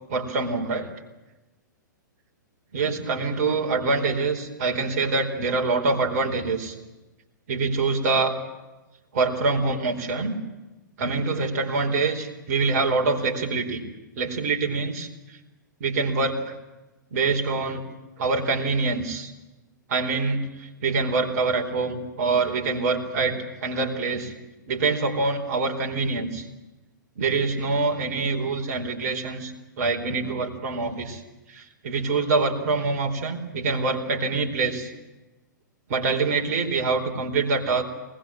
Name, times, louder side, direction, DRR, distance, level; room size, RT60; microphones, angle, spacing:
voice 1, 0.1-0.9 2.7-6.8 7.5-8.3 9.1-10.4 11.0-13.8 14.2-15.1 15.8-16.5 17.1-17.8 18.2-19.3 19.9-24.3 24.7-26.5 27.2-31.2 31.5-34.9 35.9-37.8, right 3 dB, 50° right, 3 dB, 4.5 m, -25 dB
23.5 x 20.5 x 9.1 m, 1.1 s
figure-of-eight pair, 110°, 10 cm